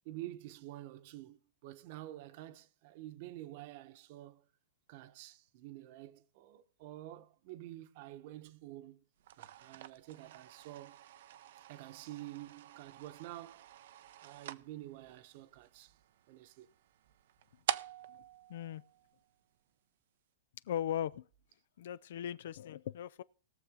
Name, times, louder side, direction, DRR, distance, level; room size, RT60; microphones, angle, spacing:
voice 1, 0.0-4.4 4.9-9.0 9.4-11.0 11.7-13.7 14.2-16.0 16.3-16.7, right 15 dB, 45° right, 1.1 m, -49 dB
sound 1, 9.2-19.6, right 12 dB, 60° right, 0.6 m, -46 dB
voice 2, 18.5-18.8 20.7-21.3 21.8-23.2, left 10 dB, 65° left, 0.5 m, -38 dB
20.0 x 6.9 x 3.7 m
hypercardioid pair, 150°, 0 cm